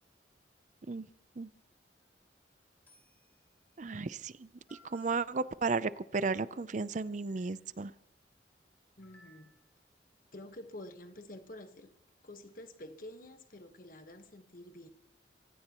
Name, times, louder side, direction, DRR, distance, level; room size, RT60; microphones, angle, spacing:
sound 1, 2.0-2.3 2.9-3.4 4.3-4.4 4.7-5.2 6.7-6.8 7.3-7.7 9.0-9.7, equal, 10° left, 4.8 m, -62 dB
voice 1, 3.8-4.5 4.8-7.9, right 4 dB, 45° right, 0.5 m, -34 dB
voice 2, 9.0-9.5 10.3-11.9 12.2-14.9, left 1 dB, 50° left, 1.4 m, -49 dB
25.5 x 16.5 x 3.0 m
head